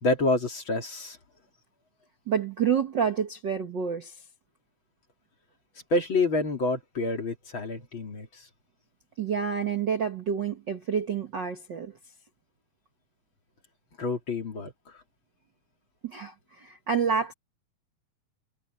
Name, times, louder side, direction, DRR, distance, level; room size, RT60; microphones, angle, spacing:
voice 1, 0.0-1.2 5.9-8.5 14.0-14.7, left 2 dB, 35° left, 3.2 m, -28 dB
voice 2, 2.3-4.2 9.2-11.9 16.0-17.3, right 7 dB, 75° right, 1.0 m, -28 dB
omnidirectional pair, 4.4 m